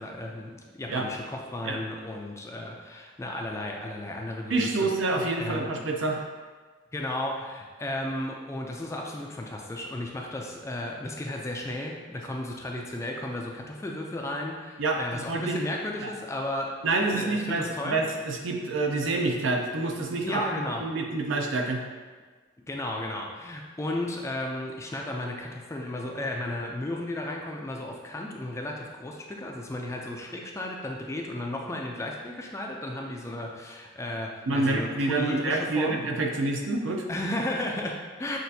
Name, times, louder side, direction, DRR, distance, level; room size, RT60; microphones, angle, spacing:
voice 1, 0.0-5.7 6.9-16.8 17.1-18.0 20.2-20.9 22.7-36.0 37.1-38.4, left 1 dB, 15° left, 0 dB, 0.3 m, -34 dB
voice 2, 4.5-6.2 14.8-15.5 16.0-16.1 16.8-20.4 20.8-21.8 34.5-37.1, right 2 dB, 70° right, 2 dB, 0.5 m, -27 dB
6.1 x 2.5 x 2.7 m, 1.4 s
head